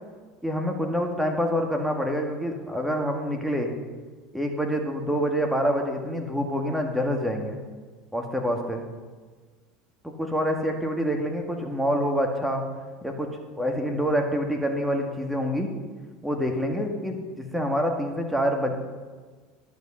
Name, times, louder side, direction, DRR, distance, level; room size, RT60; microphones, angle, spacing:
voice 1, 0.4-3.7 4.3-7.6 8.1-8.8 10.0-12.6 13.0-13.3 13.6-15.7 16.2-18.7, equal, ahead, 2 dB, 1.9 m, -26 dB
11.0 x 7.4 x 5.7 m, 1.4 s
hypercardioid pair, 85°, 0 cm